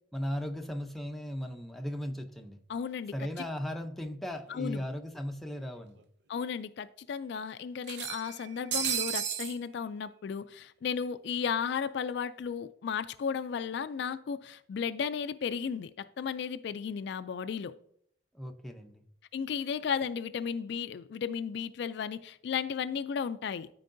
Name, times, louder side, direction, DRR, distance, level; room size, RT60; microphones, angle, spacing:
voice 1, 0.1-2.6 3.1-6.0 18.3-19.0, equal, ahead, 0.6 m, -37 dB
voice 2, 2.7-3.3 4.5-4.8 6.3-17.7 19.3-23.7, left 6 dB, 65° left, 0.3 m, -34 dB
sound 1, 4.4-4.5 4.8-4.9 6.0-6.1 6.4-6.5 7.8-9.6, right 9 dB, 65° right, 0.6 m, -33 dB
12.5 x 4.6 x 2.6 m
head